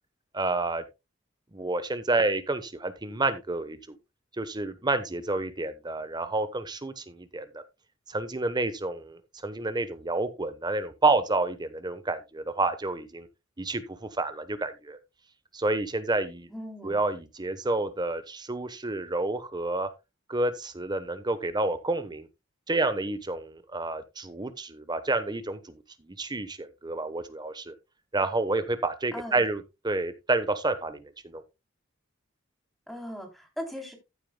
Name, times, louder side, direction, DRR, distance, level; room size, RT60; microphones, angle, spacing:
voice 1, 0.3-0.8 1.5-4.0 4.4-7.6 8.1-13.3 13.6-15.0 15.5-16.5 16.8-19.9 20.3-22.3 22.7-25.7 26.1-27.7 28.1-31.4, right 2 dB, 20° right, 1.0 m, -29 dB
voice 2, 16.5-17.0 29.1-29.4 32.9-34.0, equal, ahead, 3.3 m, -38 dB
14.5 x 8.4 x 2.2 m
head